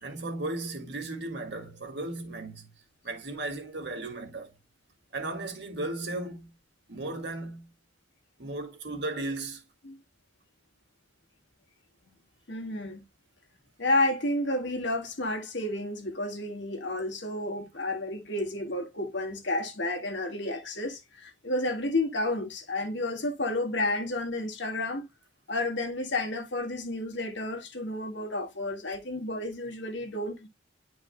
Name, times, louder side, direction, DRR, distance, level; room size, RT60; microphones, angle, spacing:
voice 1, 0.0-2.7 3.0-4.5 5.1-6.5 6.9-7.7 8.4-9.6, right 2 dB, 60° right, 2.3 m, -35 dB
voice 2, 12.5-13.0 13.8-25.0 25.5-30.5, left 2 dB, 65° left, 1.8 m, -31 dB
11.5 x 4.7 x 2.2 m
head